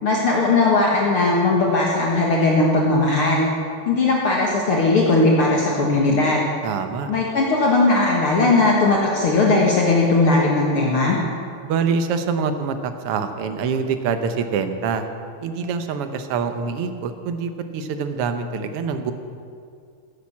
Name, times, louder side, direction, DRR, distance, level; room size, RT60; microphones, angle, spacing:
voice 1, 0.0-3.5 3.9-6.5 7.1-11.2, left 2 dB, 50° left, -3 dB, 2.1 m, -18 dB
voice 2, 6.6-7.1 11.6-15.1 15.4-19.1, right 5 dB, 65° right, 8 dB, 1.5 m, -25 dB
15.0 x 10.0 x 7.3 m, 2.3 s
omnidirectional pair, 3.5 m